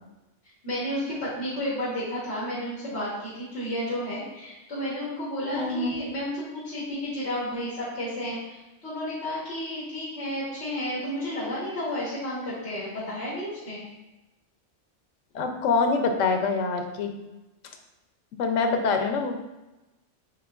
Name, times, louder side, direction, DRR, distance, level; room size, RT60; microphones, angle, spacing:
voice 1, 0.6-13.9, equal, 60° left, -9 dB, 1.5 m, -32 dB
voice 2, 5.5-6.0 15.3-17.1 18.4-19.4, left 4 dB, 90° left, 5 dB, 1.0 m, -25 dB
7.2 x 3.0 x 2.4 m, 1.0 s
omnidirectional pair, 1.3 m